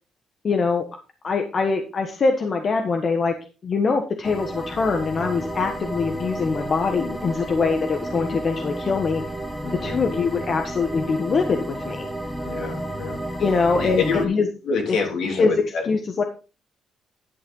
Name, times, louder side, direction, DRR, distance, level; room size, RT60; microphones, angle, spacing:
voice 1, 0.4-0.8 1.2-3.3 3.6-9.2 9.8-12.0 13.4-14.5 14.9-15.0 15.3-15.5 15.8-16.2, left 4 dB, 45° left, 5 dB, 1.3 m, -23 dB
sound 1, 4.2-14.3, right 1 dB, ahead, 2.0 m, -32 dB
voice 2, 9.6-10.0 12.4-13.2 13.7-14.3 14.6-15.8, left 5 dB, 75° left, 1 dB, 3.3 m, -26 dB
11.0 x 6.6 x 3.8 m, 0.33 s
cardioid pair, 90°, 0 cm